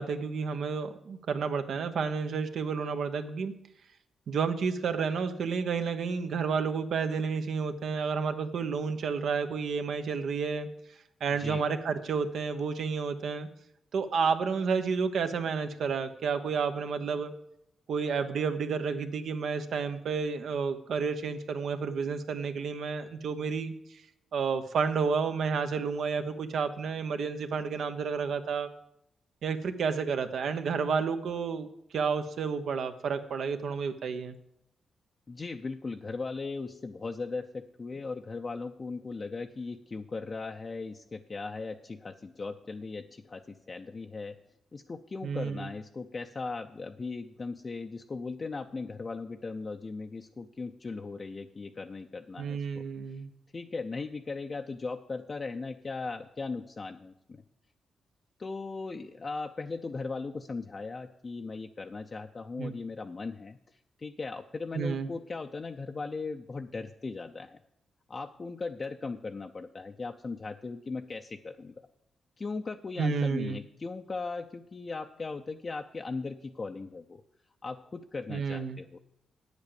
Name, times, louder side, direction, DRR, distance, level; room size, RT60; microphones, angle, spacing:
voice 1, 0.0-3.6 4.3-10.7 11.2-13.5 13.9-17.3 17.9-23.7 24.3-28.7 29.4-31.7 31.9-34.4 45.2-45.7 52.4-53.3 62.6-62.7 64.7-65.1 73.0-73.6 78.3-78.8, right 5 dB, 70° right, 8 dB, 1.0 m, -30 dB
voice 2, 11.3-11.6 35.3-44.4 44.7-52.8 53.5-57.4 58.4-67.6 68.1-71.8 72.4-77.2 77.6-79.0, left 4 dB, 35° left, 4 dB, 0.5 m, -38 dB
9.1 x 8.2 x 6.8 m, 0.79 s
cardioid pair, 85°, 0 cm